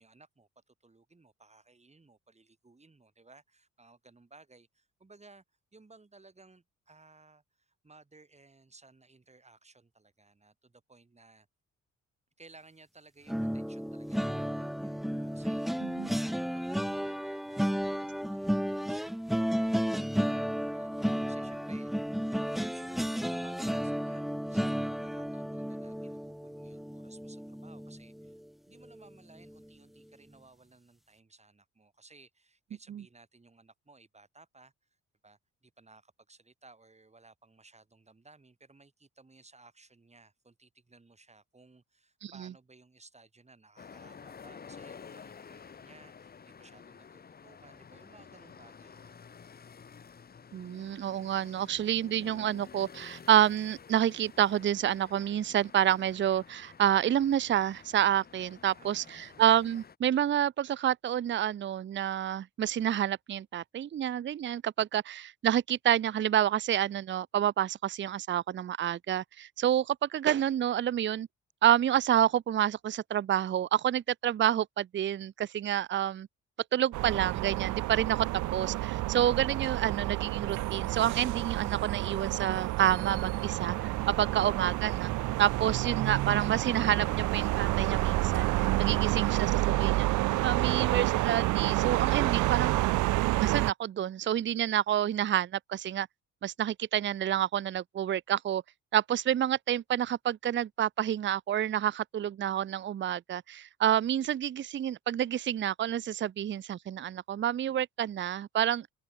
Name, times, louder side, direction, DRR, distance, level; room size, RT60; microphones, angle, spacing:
voice 1, 0.0-5.4 5.7-11.5 12.4-20.4 20.7-28.4 28.7-35.0 35.2-49.2 58.7-59.4, right 3 dB, 20° right, 6.6 m, -59 dB
sound 1, 13.3-28.4 28.8-29.1 29.4-29.6, equal, ahead, 0.8 m, -33 dB
voice 2, 15.8-16.1 32.9-33.0 42.2-42.3 50.5-71.3 71.6-76.3 76.7-78.3 78.5-83.8 84.2-85.1 85.4-90.1 90.4-92.8 93.4-96.1 96.4-98.6 98.9-108.9, right 11 dB, 40° right, 0.6 m, -28 dB
sound 2, 43.8-60.0, left 6 dB, 30° left, 1.0 m, -51 dB
sound 3, 76.9-93.7, right 18 dB, 85° right, 0.6 m, -29 dB
cardioid pair, 90°, 30 cm